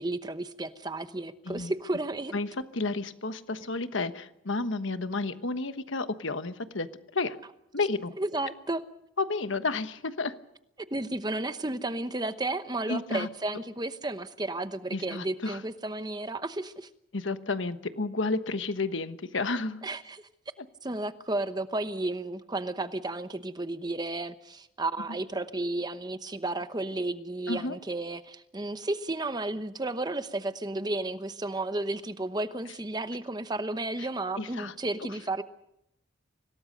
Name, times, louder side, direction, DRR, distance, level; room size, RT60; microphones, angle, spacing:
voice 1, 0.0-2.4 8.2-8.8 10.9-16.9 19.8-20.2 20.8-35.4, right 2 dB, 20° right, 11 dB, 0.9 m, -33 dB
voice 2, 2.3-6.9 7.1-7.4 7.7-8.1 9.2-10.3 12.9-13.3 14.9-15.6 17.1-19.8 27.5-27.8 34.0-34.1 34.4-34.7, left 3 dB, 70° left, 10 dB, 1.2 m, -31 dB
25.5 x 18.5 x 6.6 m, 0.82 s
head